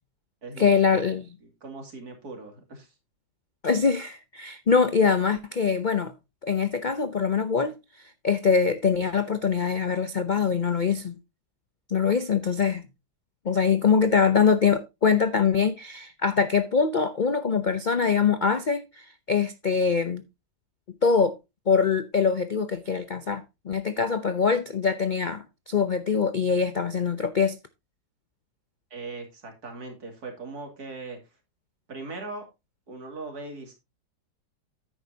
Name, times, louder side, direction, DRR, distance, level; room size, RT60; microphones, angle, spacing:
voice 1, 0.6-1.3 3.6-6.1 6.4-7.7 8.2-11.2 11.9-12.8 13.4-20.2 21.0-21.4 21.7-27.6, left 6 dB, 70° left, 0.4 m, -23 dB
voice 2, 1.4-2.9 28.9-31.2 31.9-32.5 32.9-33.7, right 3 dB, 60° right, 3.1 m, -39 dB
10.5 x 9.2 x 2.8 m
omnidirectional pair, 1.9 m